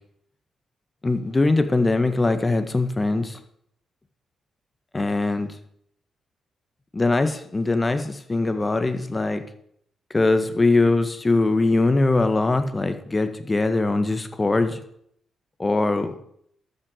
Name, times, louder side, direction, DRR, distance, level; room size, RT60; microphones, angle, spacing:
voice 1, 1.0-3.4 4.9-5.5 6.9-9.4 10.1-14.8 15.6-16.2, left 2 dB, 30° left, 9 dB, 1.7 m, -22 dB
13.0 x 6.3 x 6.5 m, 0.69 s
hypercardioid pair, 40°, 0 cm